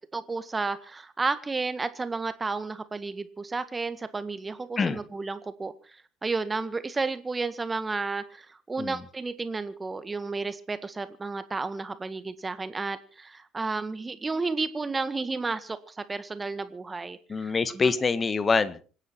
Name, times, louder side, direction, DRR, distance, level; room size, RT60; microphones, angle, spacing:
voice 1, 0.1-5.7 6.2-17.9, right 3 dB, 20° right, 12 dB, 1.7 m, -32 dB
voice 2, 17.3-18.8, left 4 dB, 30° left, 15 dB, 1.5 m, -25 dB
27.0 x 9.9 x 4.5 m, 0.39 s
figure-of-eight pair, 60°, 0 cm